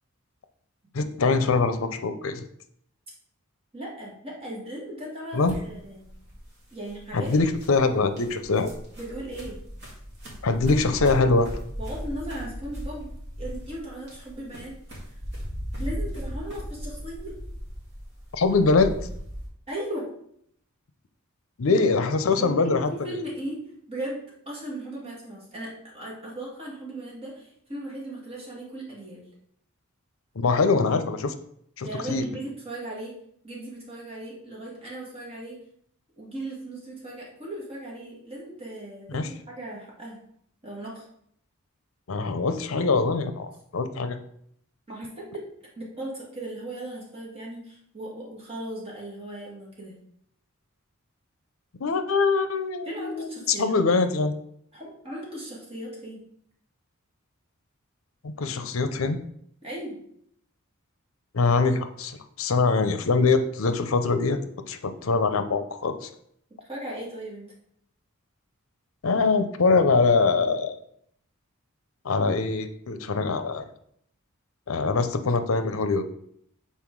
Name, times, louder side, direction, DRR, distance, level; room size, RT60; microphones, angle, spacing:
voice 1, 0.9-2.4 5.3-5.6 7.1-8.7 10.4-11.5 18.3-18.9 21.6-22.9 30.4-31.3 31.8-32.2 39.1-39.3 42.1-44.2 51.8-53.3 53.6-54.3 58.2-59.2 61.3-64.4 64.7-66.1 69.0-70.8 72.0-73.7 74.7-76.0, left 4 dB, 70° left, 9 dB, 0.6 m, -23 dB
voice 2, 3.7-6.1 6.7-7.4 9.0-9.6 11.8-13.1 13.4-14.7 15.8-17.3 19.7-20.1 22.4-23.6 23.9-29.2 31.8-33.2 33.4-35.6 36.2-40.2 40.6-41.1 44.9-45.4 45.8-49.9 52.8-53.8 54.7-56.2 59.6-60.0 66.6-67.5, right 1 dB, 30° right, -4 dB, 2.1 m, -37 dB
sound 1, 5.4-19.5, equal, 55° right, 2.2 m, -37 dB
5.7 x 4.3 x 4.6 m, 0.70 s
head